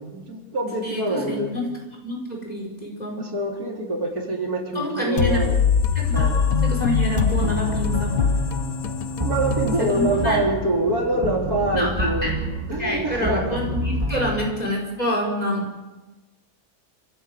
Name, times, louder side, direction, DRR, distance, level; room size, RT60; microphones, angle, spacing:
voice 1, 0.0-1.6 3.2-5.6 6.1-6.4 9.2-12.3 12.7-13.6, right 2 dB, 75° right, 0 dB, 4.6 m, -25 dB
voice 2, 0.8-1.7 2.0-3.3 4.7-5.4 5.9-6.3 6.6-8.2 9.9-10.4 11.7-12.4 12.8-15.7, equal, 25° left, 0 dB, 5.4 m, -27 dB
sound 1, 5.2-10.8, left 7 dB, 70° left, 1.4 m, -23 dB
sound 2, 6.2-14.3, equal, 20° right, 3.8 m, -29 dB
27.5 x 15.5 x 8.4 m, 1.2 s
omnidirectional pair, 1.6 m